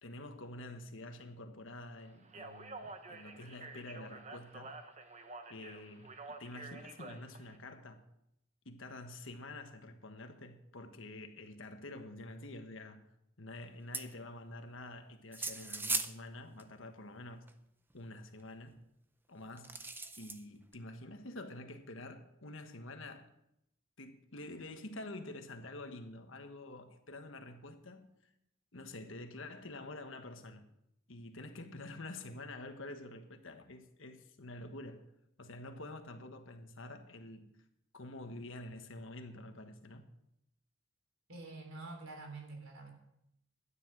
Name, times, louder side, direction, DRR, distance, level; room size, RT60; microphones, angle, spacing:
voice 1, 0.0-4.8 5.5-8.0 8.6-13.0 13.4-17.5 17.9-18.8 19.3-19.8 20.2-23.3 24.0-28.1 28.7-30.7 31.1-35.1 35.4-37.5 37.9-40.1, left 2 dB, 65° left, 1.4 m, -48 dB
Speech, 2.2-7.6, right 3 dB, 35° right, 1.1 m, -49 dB
sound 1, 13.9-14.1 15.3-16.1 16.6-16.7 17.5-17.6 19.6-20.4 20.7-20.8, right 3 dB, 10° right, 0.6 m, -37 dB
voice 2, 41.3-42.9, right 3 dB, 80° right, 3.3 m, -47 dB
12.5 x 9.9 x 6.1 m
head